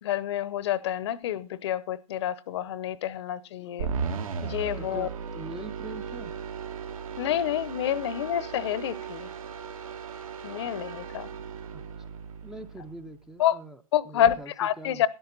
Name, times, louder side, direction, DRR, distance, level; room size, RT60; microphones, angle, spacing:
voice 1, 0.0-3.9 4.4-5.1 7.2-9.3 10.4-11.3 13.4-13.6 13.9-15.1, left 11 dB, 50° left, 0.8 m, -28 dB
sound 1, 3.8-13.2, right 6 dB, 75° right, 2.5 m, -36 dB
voice 2, 4.8-6.4 11.7-11.8 12.4-13.8 14.1-14.5 14.8-15.1, right 1 dB, 5° right, 0.5 m, -42 dB
13.0 x 10.5 x 3.9 m
hypercardioid pair, 145°, 18 cm